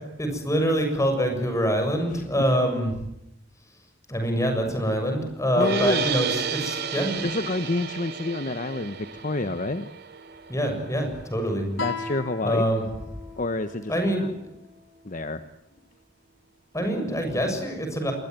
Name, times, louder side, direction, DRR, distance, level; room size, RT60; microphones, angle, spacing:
voice 1, 0.2-2.9 4.1-7.2 10.5-11.7 12.4-12.8 13.9-14.3 16.7-18.1, equal, 15° left, 5 dB, 7.0 m, -25 dB
voice 2, 5.5-6.1 7.2-9.9 11.8-12.6 13.4-14.3 15.0-15.5, left 2 dB, 45° left, 11 dB, 1.1 m, -28 dB
sound 1, 5.6-11.8, right 6 dB, 60° right, 2.9 m, -32 dB
Guitar, 11.8-15.0, left 4 dB, 85° left, 4.2 m, -38 dB
26.5 x 21.0 x 9.4 m, 0.85 s
head